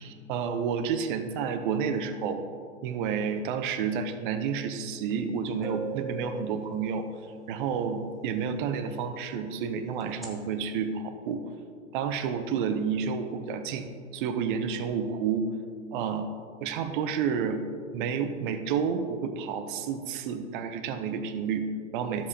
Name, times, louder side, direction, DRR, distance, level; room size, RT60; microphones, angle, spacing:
voice 1, 0.0-2.4 2.8-7.1 7.5-11.4 11.9-13.9 14.1-15.5 15.9-16.3 16.6-17.6 17.9-22.3, right 6 dB, 40° right, 9 dB, 0.8 m, -30 dB
sound 1, 5.1-5.2 5.6-7.4 10.0-10.3, right 4 dB, ahead, 0.4 m, -39 dB
12.5 x 7.3 x 2.8 m, 2.2 s
figure-of-eight pair, 110°, 40 cm